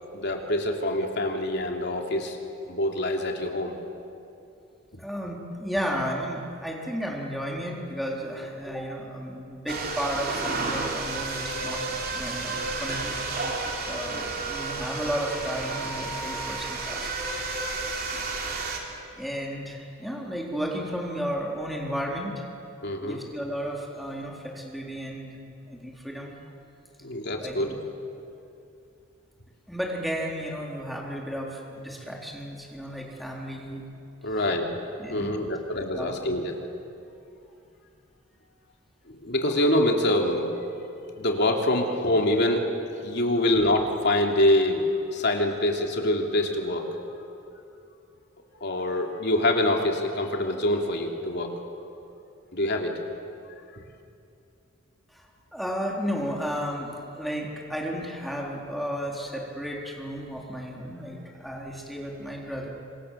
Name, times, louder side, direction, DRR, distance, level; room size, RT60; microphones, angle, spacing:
voice 1, 0.1-2.4 2.7-3.8 22.8-23.2 27.0-27.7 34.2-34.8 35.1-36.5 39.1-40.5 41.2-42.7 43.0-46.9 48.6-51.5 52.5-53.0, left 1 dB, 60° left, 2 dB, 3.2 m, -25 dB
voice 2, 5.0-13.5 13.9-17.1 17.7-17.8 19.1-22.4 23.0-26.3 27.4-27.8 29.7-33.9 35.0-35.6 35.9-36.1 55.1-62.7, equal, ahead, -2 dB, 4.1 m, -33 dB
sound 1, 9.7-18.8, right 3 dB, 50° right, 3.6 m, -31 dB
27.0 x 26.0 x 7.6 m, 2.6 s
head